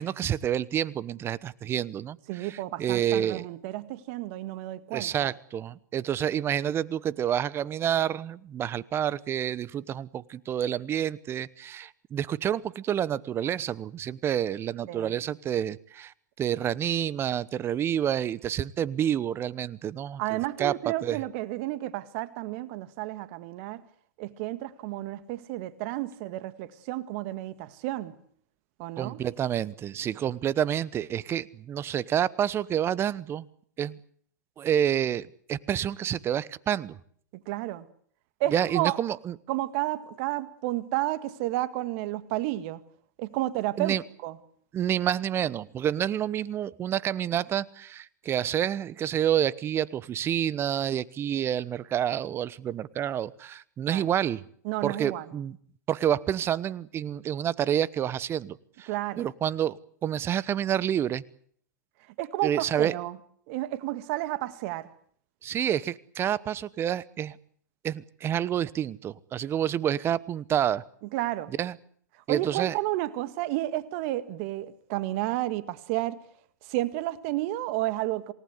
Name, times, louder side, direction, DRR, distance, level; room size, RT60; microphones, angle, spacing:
voice 1, 0.0-3.5 4.9-20.7 21.0-21.2 29.0-33.5 33.8-34.0 34.6-37.0 38.5-39.3 43.8-44.0 44.7-54.4 54.8-55.6 55.9-58.9 59.2-61.2 62.4-62.9 65.4-67.4 67.8-70.8 71.6-71.7 72.3-72.7, right 10 dB, 25° right, 1.0 m, -28 dB
voice 2, 2.3-5.3 14.9-15.1 20.2-23.8 24.2-28.2 28.8-29.2 37.5-37.9 38.4-39.0 39.5-42.8 43.2-44.0 44.2-44.4 53.9-54.1 54.6-55.3 58.9-59.3 62.2-63.2 63.5-64.9 71.1-71.5 72.3-76.2 76.6-78.3, right 16 dB, 45° right, 1.8 m, -31 dB
28.0 x 18.5 x 7.9 m
hypercardioid pair, 110°, 10 cm